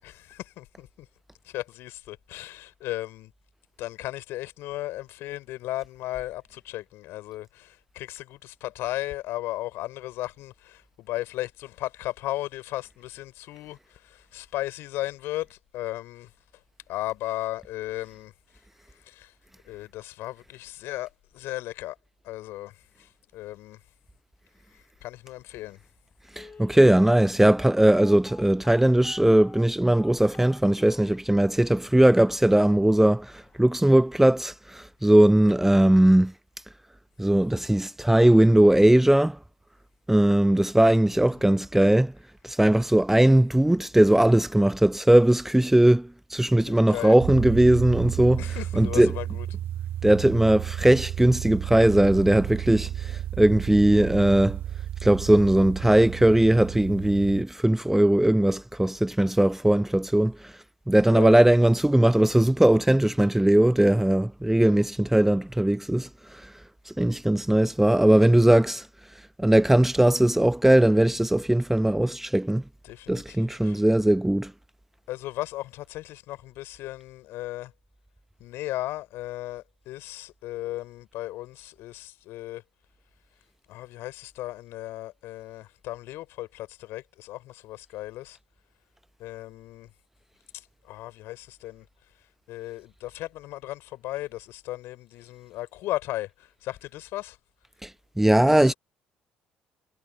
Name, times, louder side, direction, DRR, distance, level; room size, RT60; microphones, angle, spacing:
voice 1, 0.0-0.9 1.5-3.3 3.8-16.3 16.9-18.3 19.1-19.3 19.7-22.0 22.2-22.7 23.0-23.8 25.0-25.8 41.3-41.7 46.7-47.1 48.4-49.5 61.1-61.3 72.8-73.8 75.1-77.7 78.4-82.6 83.7-88.4 89.2-89.9 90.5-91.9 92.5-97.4 98.5-98.7, left 16 dB, 65° left, 5.4 m, -36 dB
Telephone, 25.6-25.7 26.3-31.2 31.7-31.8 32.1-32.3 32.7-33.0 33.3-33.4, left 5 dB, 35° left, 4.0 m, -48 dB
voice 2, 26.4-36.3 37.2-39.4 40.1-42.1 42.4-48.4 48.8-49.1 50.0-54.6 55.0-60.3 60.9-66.1 66.9-68.9 69.4-72.6 73.1-74.5 97.8-97.9 98.2-98.7, right 1 dB, 5° right, 0.9 m, -19 dB
sound 1, 47.2-57.4, right 11 dB, 55° right, 2.7 m, -33 dB
figure-of-eight pair, 50°, 4 cm